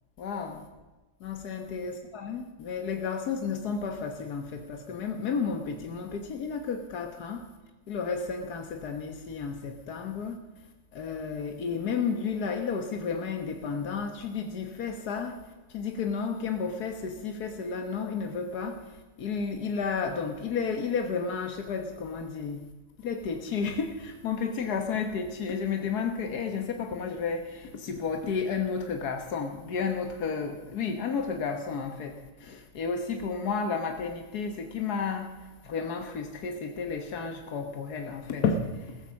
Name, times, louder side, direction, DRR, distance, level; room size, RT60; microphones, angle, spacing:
voice 1, 0.2-0.6 1.2-7.5 7.9-10.4 10.9-15.4 15.7-22.6 23.0-39.0, left 5 dB, 85° left, 5 dB, 1.8 m, -32 dB
16.0 x 14.5 x 6.4 m, 1.2 s
omnidirectional pair, 1.6 m